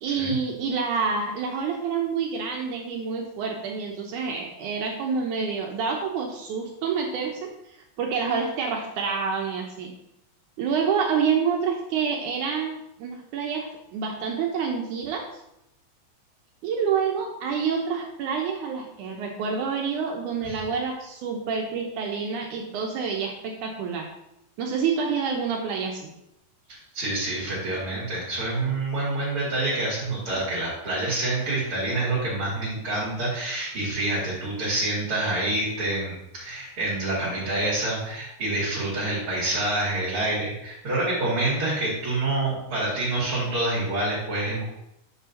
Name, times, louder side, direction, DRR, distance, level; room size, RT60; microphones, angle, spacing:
voice 1, 0.0-9.9 10.6-15.3 16.6-24.1 24.6-26.1, right 6 dB, 75° right, 1 dB, 2.0 m, -28 dB
voice 2, 26.7-44.6, right 2 dB, 40° right, -9 dB, 2.9 m, -27 dB
8.8 x 7.1 x 2.7 m, 0.83 s
omnidirectional pair, 4.0 m